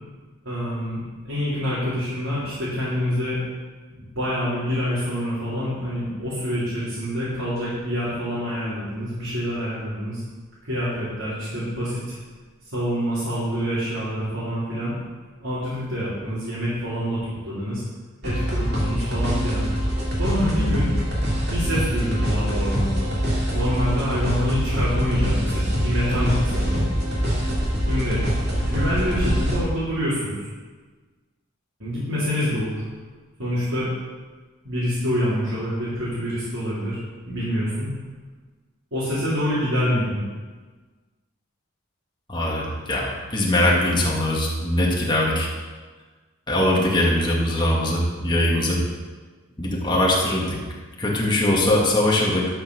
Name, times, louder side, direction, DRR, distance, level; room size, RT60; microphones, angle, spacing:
voice 1, 0.4-1.0 1.2-3.4 4.2-10.2 10.6-12.0 12.7-14.9 15.4-17.8 18.2-19.6 20.2-20.9 21.5-23.1 23.5-26.9 27.9-28.2 28.6-30.5 31.8-32.8 33.4-33.9 34.6-37.0 37.2-37.9 38.9-40.2, equal, 70° right, -11 dB, 3.8 m, -26 dB
sound 1, 18.2-29.6, equal, 50° right, 2.8 m, -24 dB
voice 2, 42.3-45.5 46.5-48.8 49.6-50.6 51.0-52.5, left 1 dB, 20° left, -3 dB, 2.1 m, -21 dB
12.0 x 5.9 x 6.4 m, 1.4 s
head